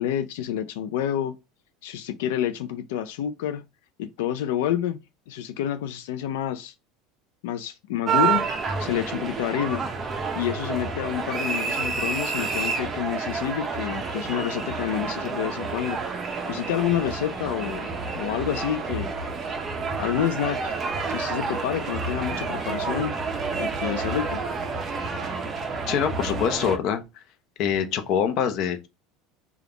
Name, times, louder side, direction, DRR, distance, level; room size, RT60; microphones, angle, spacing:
voice 1, 0.0-1.3 1.8-3.6 4.0-5.0 5.3-6.7 7.4-8.5 8.8-9.8 10.3-17.9 18.1-19.1 20.0-20.8 21.1-23.1 23.6-24.4, left 10 dB, 85° left, 0.4 m, -28 dB
sound 1, 8.1-26.8, right 4 dB, 20° right, 0.6 m, -29 dB
voice 2, 25.9-27.0 27.6-28.9, left 8 dB, 45° left, 0.7 m, -24 dB
3.4 x 2.3 x 3.8 m
cardioid pair, 165°, 0 cm